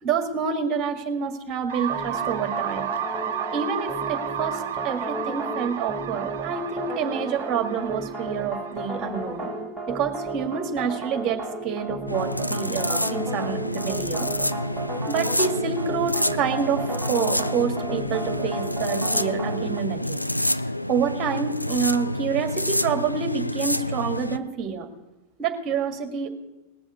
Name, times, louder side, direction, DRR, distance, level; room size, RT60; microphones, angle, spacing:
voice 1, 0.0-2.8 3.5-9.5 9.9-14.3 15.1-20.2 20.9-24.9 25.4-26.3, right 6 dB, 30° right, 7 dB, 2.0 m, -28 dB
sound 1, 1.7-9.6, right 9 dB, 55° right, 1.2 m, -33 dB
sound 2, 1.9-19.8, right 2 dB, 15° right, 1.5 m, -34 dB
sound 3, 12.1-24.4, left 1 dB, 90° left, 0.4 m, -28 dB
18.5 x 7.0 x 8.4 m, 1.1 s
figure-of-eight pair, 90°, 0 cm